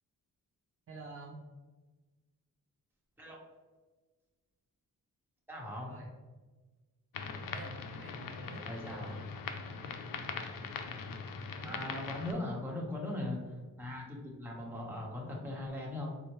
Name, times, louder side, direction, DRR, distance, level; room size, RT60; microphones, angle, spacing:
voice 1, 0.9-1.4 5.7-6.1 7.4-9.3 11.5-12.3, right 2 dB, 40° right, -1 dB, 0.4 m, -49 dB
voice 2, 5.5-5.9 8.6-9.1 11.6-16.1, left 1 dB, 5° right, -3 dB, 0.9 m, -39 dB
sound 1, 7.1-12.3, left 5 dB, 80° left, 0.5 m, -41 dB
4.2 x 2.0 x 3.0 m, 1.3 s
wide cardioid pair, 105°, 34 cm